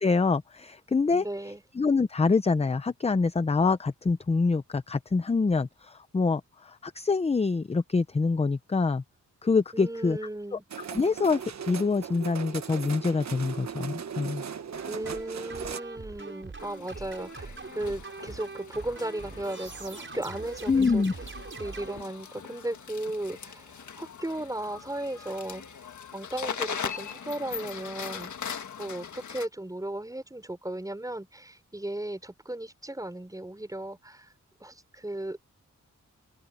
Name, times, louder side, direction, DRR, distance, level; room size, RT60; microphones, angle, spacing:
voice 1, 0.0-1.2 1.8-9.0 9.4-10.2 10.9-14.4 20.7-21.1, left 4 dB, 20° left, 0.6 m, -25 dB
voice 2, 1.1-1.6 9.7-10.6 14.9-21.0 21.6-25.8 26.1-34.3 34.6-35.4, right 1 dB, 10° right, 5.1 m, -36 dB
sound 1, 10.7-15.8, right 7 dB, 60° right, 1.2 m, -38 dB
sound 2, 14.7-22.0, right 4 dB, 40° right, 6.3 m, -42 dB
sound 3, 16.6-29.5, left 7 dB, 70° left, 1.7 m, -41 dB
wide cardioid pair, 120°, 31 cm